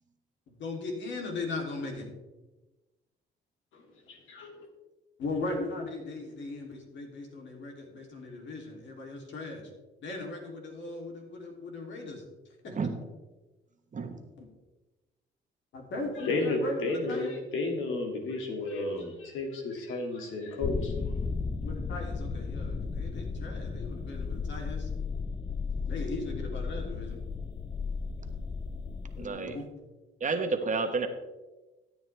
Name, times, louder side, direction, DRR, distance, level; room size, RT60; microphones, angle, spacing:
voice 1, 0.5-2.1 5.2-9.7 10.0-12.2 12.6-12.8 15.7-17.4 21.6-24.9 25.9-27.2 29.2-29.6, left 2 dB, 70° left, 0 dB, 3.1 m, -38 dB
voice 2, 3.7-4.7 16.2-21.1, left 2 dB, 85° left, 2 dB, 2.3 m, -33 dB
sound 1, 20.6-29.3, left 4 dB, 20° left, 0.5 m, -34 dB
voice 3, 29.2-29.5 30.2-31.1, right 4 dB, 40° right, 6 dB, 1.3 m, -30 dB
14.0 x 8.8 x 3.4 m, 1.1 s
cardioid pair, 90°, 20 cm